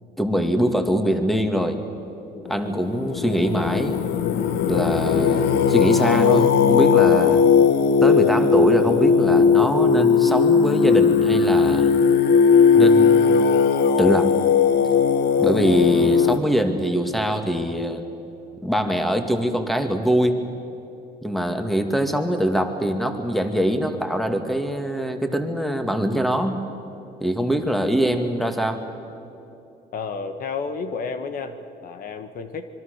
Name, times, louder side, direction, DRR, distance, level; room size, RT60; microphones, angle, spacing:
voice 1, 0.2-1.8 2.5-4.0 4.7-7.4 8.0-11.9 12.7-13.4 14.0-14.3 15.4-18.0 18.6-20.4 21.2-26.6 27.2-28.8, equal, ahead, 6 dB, 2.1 m, -23 dB
Singing, 2.5-16.4, left 6 dB, 80° left, 1.3 m, -18 dB
voice 2, 29.9-32.7, left 5 dB, 55° left, 8 dB, 1.6 m, -31 dB
25.5 x 23.0 x 6.7 m, 2.9 s
cardioid pair, 110°, 17 cm